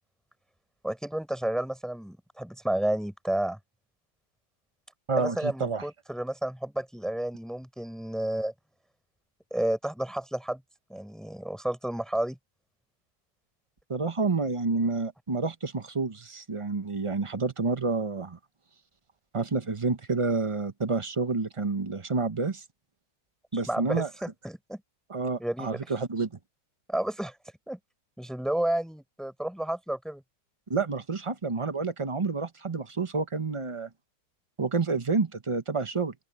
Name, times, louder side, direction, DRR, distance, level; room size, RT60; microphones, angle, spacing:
voice 1, 0.8-3.6 5.2-8.5 9.5-10.6 10.9-12.4 23.5-24.8 25.4-25.8 26.9-27.4 27.7-27.8 28.2-30.2, right 1 dB, ahead, 5.8 m, -31 dB
voice 2, 5.1-5.8 13.9-18.4 19.3-22.6 23.5-24.1 25.1-26.3 30.7-33.9 34.6-36.1, right 4 dB, 25° right, 0.7 m, -29 dB
open air
omnidirectional pair, 1.9 m